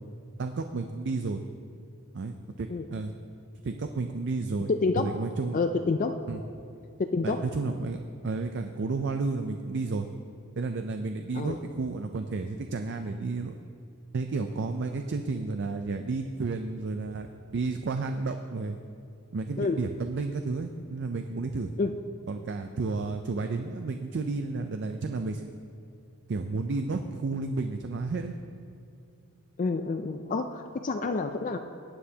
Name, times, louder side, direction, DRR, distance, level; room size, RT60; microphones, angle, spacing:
voice 1, 0.4-1.4 2.1-3.1 3.6-4.7 5.0-5.6 6.3-6.4 7.2-10.1 10.6-13.5 14.1-17.3 17.5-18.8 19.3-21.7 22.3-25.5 26.3-28.3, right 3 dB, 50° right, 6 dB, 0.4 m, -32 dB
voice 2, 4.7-5.1 5.5-6.2 7.0-7.4 11.3-11.6 19.6-19.8 21.8-21.9 29.6-31.6, left 3 dB, 35° left, 6 dB, 0.4 m, -28 dB
17.5 x 9.7 x 2.8 m, 2.4 s
head